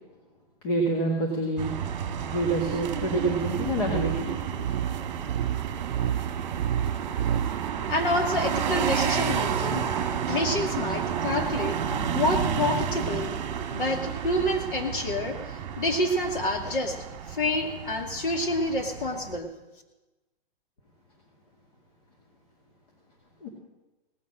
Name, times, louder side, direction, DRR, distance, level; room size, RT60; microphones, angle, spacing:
voice 1, 0.6-1.7 2.3-4.7 23.4-23.5, right 2 dB, 40° left, -1 dB, 2.3 m, -27 dB
sound 1, 1.6-19.4, right 8 dB, 35° right, 1.5 m, -31 dB
sound 2, 3.8-7.7, right 9 dB, 50° right, 0.5 m, -30 dB
voice 2, 7.9-9.9 10.3-11.8 12.1-13.4 13.7-15.4 15.8-17.0 17.3-19.5, left 1 dB, 60° left, 4 dB, 2.6 m, -28 dB
17.5 x 7.5 x 7.6 m, 1.1 s
hypercardioid pair, 180°, 29 cm